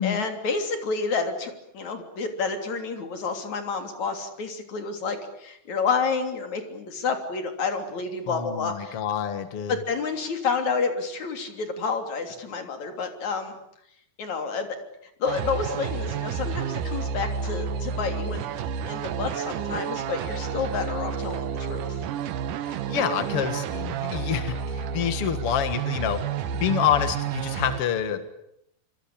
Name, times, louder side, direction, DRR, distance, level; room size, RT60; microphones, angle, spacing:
voice 1, 0.0-9.0 9.7-13.5 14.2-14.7 15.2-18.5 18.9-22.0, left 4 dB, 40° left, 6 dB, 4.1 m, -29 dB
voice 2, 8.3-9.8 22.7-26.2 26.6-28.2, left 9 dB, 60° left, 10 dB, 1.5 m, -27 dB
sound 1, 15.3-27.8, right 7 dB, 70° right, 2.1 m, -30 dB
26.5 x 25.5 x 8.8 m, 0.74 s
omnidirectional pair, 5.3 m